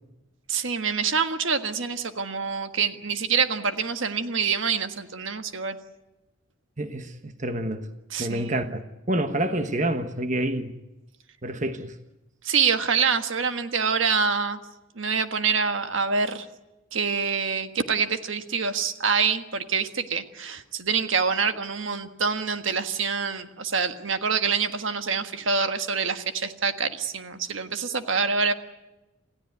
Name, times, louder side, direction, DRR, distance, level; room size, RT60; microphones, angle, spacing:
voice 1, 0.5-5.7 8.1-8.6 12.4-14.6 14.9-16.5 16.9-28.5, right 5 dB, 70° right, 1.5 m, -26 dB
voice 2, 6.8-7.9 8.2-8.8 9.1-10.7 11.4-11.9, right 1 dB, 35° right, 1.2 m, -28 dB
28.0 x 16.0 x 9.5 m
head